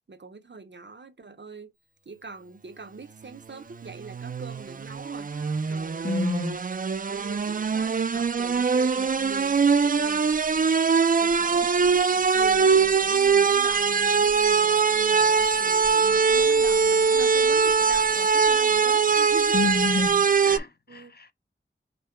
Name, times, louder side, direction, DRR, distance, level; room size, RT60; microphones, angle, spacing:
voice 1, 0.1-1.7 2.1-5.4 5.7-6.3 7.1-10.3 11.2-11.7 12.1-19.6 19.9-20.2 20.9-21.1, right 4 dB, 65° right, 0.7 m, -42 dB
sound 1, 3.8-20.6, right 5 dB, 45° right, 0.4 m, -22 dB
voice 2, 6.0-6.6 19.5-21.3, left 2 dB, 55° left, 0.6 m, -28 dB
5.3 x 2.1 x 4.4 m
wide cardioid pair, 50°, 20 cm